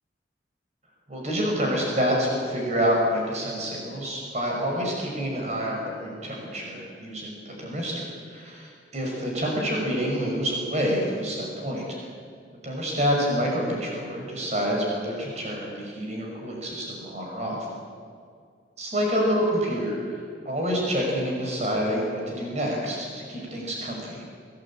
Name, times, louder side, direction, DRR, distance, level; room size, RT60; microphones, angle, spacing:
voice 1, 1.1-11.9 12.6-17.7 18.8-24.2, equal, 40° right, -1 dB, 5.8 m, -27 dB
26.0 x 19.0 x 8.9 m, 2.2 s
head